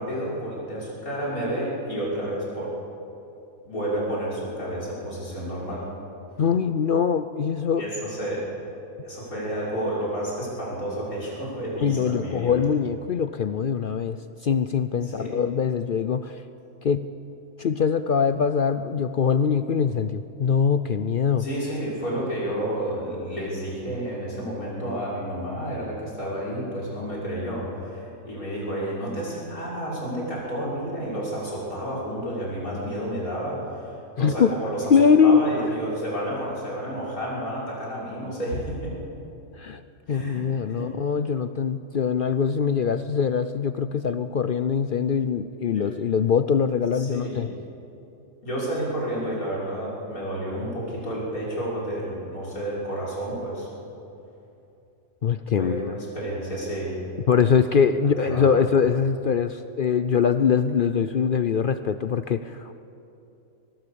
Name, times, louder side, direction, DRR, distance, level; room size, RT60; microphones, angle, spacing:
voice 1, 0.0-2.8 3.6-5.9 7.8-8.5 9.0-12.6 15.0-15.4 21.4-38.9 40.1-40.9 45.7-45.9 46.9-47.4 48.4-53.7 55.6-57.0 58.2-58.5, right 1 dB, 90° left, -6 dB, 6.6 m, -31 dB
voice 2, 6.4-7.9 11.8-16.4 16.8-17.1 17.6-21.5 34.2-34.5 34.9-35.5 39.6-39.8 40.1-47.5 55.2-56.0 57.3-62.7, left 6 dB, 55° left, 11 dB, 0.6 m, -23 dB
23.5 x 20.5 x 7.0 m, 2.8 s
omnidirectional pair, 1.5 m